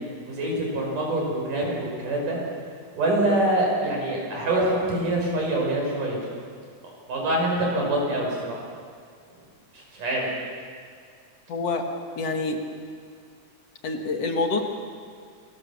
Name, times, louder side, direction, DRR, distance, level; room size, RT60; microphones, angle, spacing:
voice 1, 0.3-2.4 3.0-6.2 6.8-8.6 9.7-10.3, right 1 dB, 85° right, -1 dB, 7.1 m, -25 dB
voice 2, 11.5-11.9 12.2-12.6 13.8-14.6, left 3 dB, 55° left, 4 dB, 2.7 m, -26 dB
28.0 x 20.0 x 7.3 m, 2.1 s
omnidirectional pair, 3.6 m